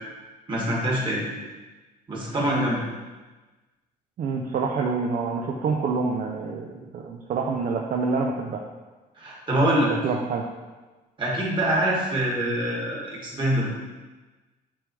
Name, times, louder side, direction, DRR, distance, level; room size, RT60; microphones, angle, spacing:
voice 1, 0.5-1.3 2.1-2.8 9.2-9.9 11.2-13.7, right 1 dB, 30° right, -4 dB, 2.0 m, -24 dB
voice 2, 4.2-8.6 10.0-10.4, right 4 dB, 55° right, 0 dB, 0.6 m, -27 dB
8.5 x 3.5 x 3.3 m, 1.2 s
cardioid pair, 110°, 17 cm